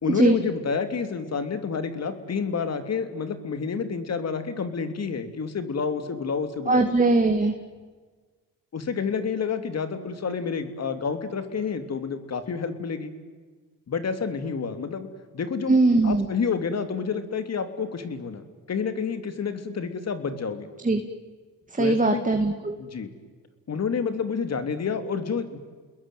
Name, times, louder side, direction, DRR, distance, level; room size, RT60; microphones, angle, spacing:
voice 1, 0.0-6.8 8.7-13.1 13.9-15.1 15.3-15.8 16.0-18.4 18.7-20.7 21.8-22.3 22.8-23.1 23.7-25.6, left 5 dB, 50° left, 9 dB, 3.1 m, -29 dB
voice 2, 6.7-7.5 15.7-16.3 20.8-21.0 21.7-22.8, right 3 dB, 25° right, 5 dB, 2.3 m, -20 dB
29.5 x 20.5 x 9.4 m, 1.5 s
supercardioid pair, 65°, 34 cm